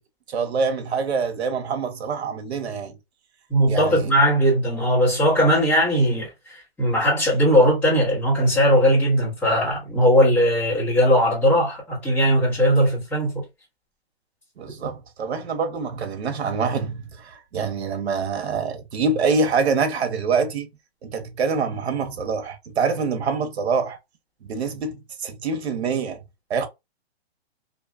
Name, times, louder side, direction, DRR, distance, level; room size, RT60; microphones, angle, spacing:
voice 1, 0.3-3.0 3.7-4.1 14.6-20.7 21.0-24.0 24.4-26.2 26.5-26.7, right 5 dB, 80° right, 0.8 m, -25 dB
voice 2, 3.5-13.4 14.8-14.9, equal, 5° left, 0.9 m, -19 dB
2.6 x 2.3 x 2.3 m
hypercardioid pair, 175°, 32 cm